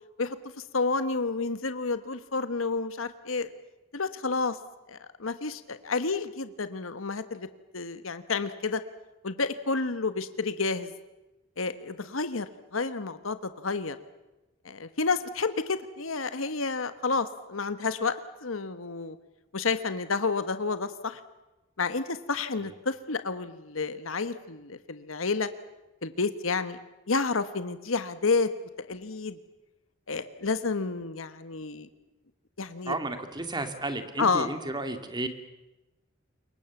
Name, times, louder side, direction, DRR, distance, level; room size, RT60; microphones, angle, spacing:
voice 1, 0.7-3.5 3.9-4.6 4.9-7.5 7.7-8.8 9.2-10.9 11.6-14.0 14.6-18.1 18.4-19.2 19.5-21.2 21.8-25.5 26.0-26.8 27.1-28.5 28.8-29.4 30.1-31.9 32.6-33.0 34.2-34.5, left 4 dB, 80° left, 11 dB, 1.3 m, -30 dB
voice 2, 32.9-35.3, right 2 dB, 20° right, 8 dB, 2.2 m, -33 dB
27.5 x 23.0 x 7.2 m, 1.0 s
head